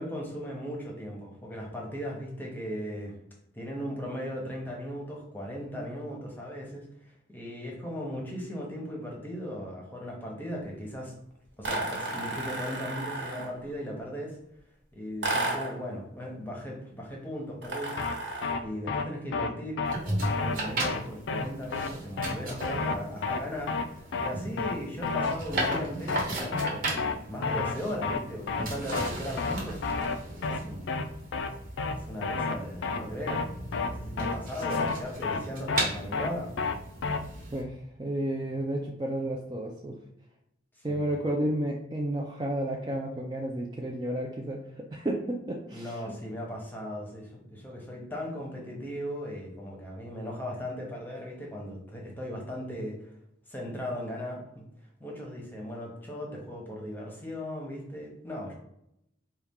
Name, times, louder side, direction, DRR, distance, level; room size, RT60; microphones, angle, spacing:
voice 1, 0.0-3.1 3.5-6.9 7.3-11.1 11.6-14.4 14.9-17.9 18.6-29.8 30.3-30.9 31.9-33.5 33.7-36.5 40.9-41.2 45.7-52.9 53.5-54.7 55.0-58.5, equal, 10° left, -2 dB, 0.8 m, -37 dB
sound 1, 11.6-13.6 15.2-15.8 17.6-18.6, right 2 dB, 70° right, 1.2 m, -33 dB
sound 2, 18.0-18.1 18.4-18.6 18.9-19.0 19.3-19.5 19.8-19.9 20.2-20.6 20.8-21.0 21.3-21.4 21.7-21.9 22.2-22.3 22.6-22.9 23.2-23.4 23.7-23.9 24.1-24.3 24.6-24.8 25.0-25.3 25.6-25.8 26.1-26.3 26.5-26.7 27.0-27.2 27.4-27.8 28.0-28.2 28.5-28.6 28.9-29.1 29.4-29.5 29.8-30.2 30.4-30.6 30.9-31.0 31.3-31.5 31.8-31.9 32.2-32.6 32.8-33.0 33.3-33.4 33.7-33.9 34.2-34.3 34.6-34.9 35.2-35.4 35.7-35.9 36.1-36.3 36.6-36.8 37.0-37.2, left 4 dB, 80° left, 0.4 m, -30 dB
sound 3, 19.8-37.6, right 1 dB, 50° right, 1.0 m, -37 dB
voice 2, 37.5-40.0 40.8-44.6 44.9-46.0, right 1 dB, 25° right, -1 dB, 0.4 m, -31 dB
4.2 x 2.3 x 3.5 m, 0.79 s
head